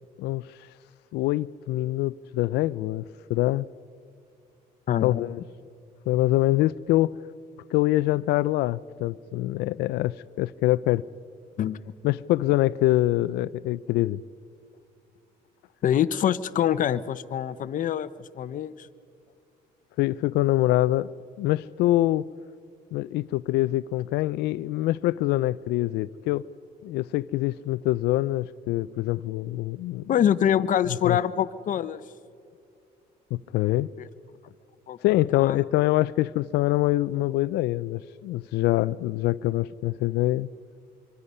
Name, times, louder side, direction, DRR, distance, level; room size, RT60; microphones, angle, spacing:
voice 1, 1.1-3.7 5.0-5.4 6.1-7.2 7.7-11.0 12.0-14.2 20.0-21.1 21.4-22.3 22.9-26.5 26.8-30.0 31.0-31.2 33.3-33.9 35.0-40.5, left 16 dB, 80° left, 0.4 m, -25 dB
voice 2, 4.9-5.3 11.6-11.8 15.8-18.1 18.4-18.9 30.1-32.0 34.9-35.0 35.3-35.6, left 10 dB, 50° left, 0.8 m, -25 dB
25.5 x 24.0 x 5.5 m
cardioid pair, 110°, 17 cm